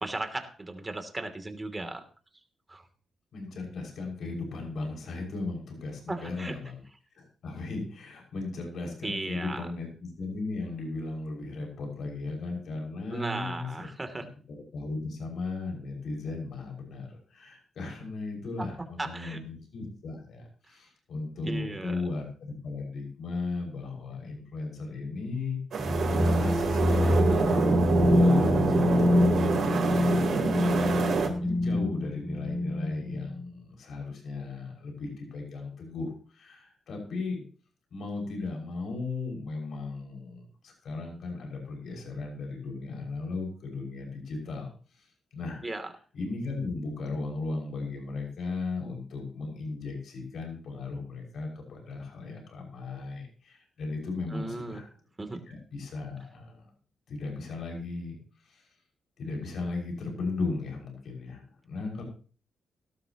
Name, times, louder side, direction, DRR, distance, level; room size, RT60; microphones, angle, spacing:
voice 1, 0.0-2.0 2.7-2.9 6.1-6.6 9.0-9.7 13.1-14.3 18.6-18.7 19.0-19.4 21.4-22.0 45.6-45.9 54.3-54.8 55.2-55.4, right 2 dB, 25° right, 6 dB, 3.0 m, -36 dB
voice 2, 3.3-6.8 7.1-13.9 14.5-30.3 31.1-37.4 37.9-45.6 46.1-54.9 55.5-56.7 57.1-58.7 59.2-62.0, left 3 dB, 70° left, 1 dB, 6.2 m, -36 dB
sound 1, 25.7-31.3, right 4 dB, 70° right, 3.8 m, -26 dB
sound 2, 25.8-33.5, left 1 dB, 5° right, 2.8 m, -26 dB
17.5 x 13.0 x 3.1 m, 0.39 s
cardioid pair, 65°, 0 cm